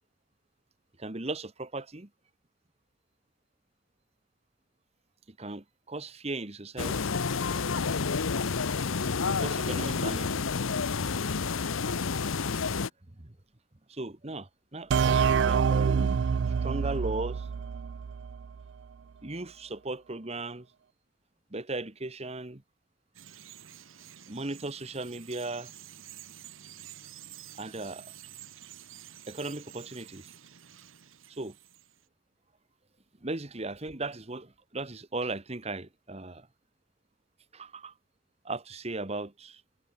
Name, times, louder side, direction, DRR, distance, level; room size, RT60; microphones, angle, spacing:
voice 1, 1.0-2.1 5.4-7.2 8.9-9.0 9.3-10.3 13.2-13.3 13.9-16.1 16.6-17.5 19.2-20.7 21.5-22.6 24.3-25.7 27.6-28.1 29.3-30.3 31.3-31.5 33.2-36.5 37.5-37.9 38.4-39.6, right 2 dB, 30° right, 1.3 m, -37 dB
sound 1, 6.8-12.9, left 5 dB, 85° left, 0.8 m, -29 dB
sound 2, 14.9-18.5, right 6 dB, 60° right, 0.3 m, -26 dB
Bird vocalization bird call bird song, 23.1-32.0, right 10 dB, 85° right, 1.9 m, -50 dB
head